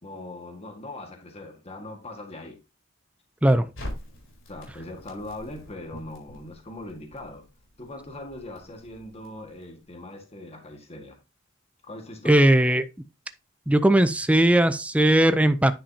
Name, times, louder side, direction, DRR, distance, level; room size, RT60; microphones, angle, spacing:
voice 1, 0.0-2.6 4.5-7.4 7.8-11.2 11.8-12.5, left 1 dB, 30° left, 1.7 m, -40 dB
Crackle, 3.7-9.9, left 1 dB, 75° left, 4.3 m, -44 dB
voice 2, 12.2-12.8 13.7-15.7, right 1 dB, 5° right, 0.4 m, -18 dB
10.0 x 5.5 x 2.8 m
head